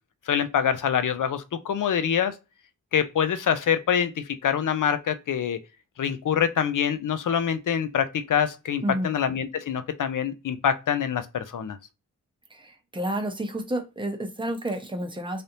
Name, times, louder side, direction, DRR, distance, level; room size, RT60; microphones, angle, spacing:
voice 1, 0.3-2.4 2.9-5.6 6.0-11.8, left 8 dB, 70° left, 0.6 m, -25 dB
voice 2, 8.8-9.1 12.5-15.4, right 1 dB, 15° right, 0.7 m, -30 dB
3.3 x 2.6 x 2.7 m
wide cardioid pair, 75°, 32 cm